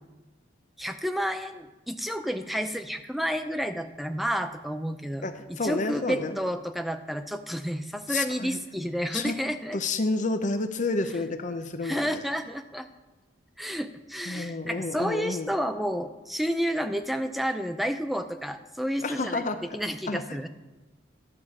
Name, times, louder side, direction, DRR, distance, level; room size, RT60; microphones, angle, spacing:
voice 1, 0.8-9.8 11.8-12.9 13.6-20.5, equal, ahead, 8 dB, 0.4 m, -31 dB
voice 2, 5.2-6.4 8.1-8.6 9.1-9.3 9.7-12.1 14.3-15.5 19.0-19.6 20.1-20.5, left 3 dB, 40° left, 8 dB, 0.6 m, -30 dB
11.0 x 4.8 x 7.1 m, 1.1 s
head